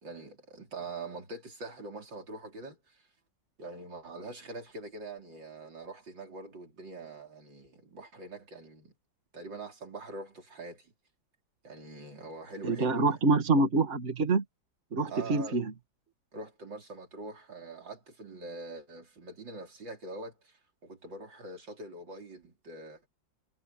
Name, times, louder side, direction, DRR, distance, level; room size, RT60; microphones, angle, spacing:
voice 1, 0.0-3.0 3.6-8.9 9.3-10.9 11.6-13.2 15.1-15.6 16.3-23.0, right 2 dB, 70° right, 4.9 m, -44 dB
voice 2, 12.6-14.4 14.9-15.7, right 3 dB, 35° right, 2.5 m, -26 dB
omnidirectional pair, 2.1 m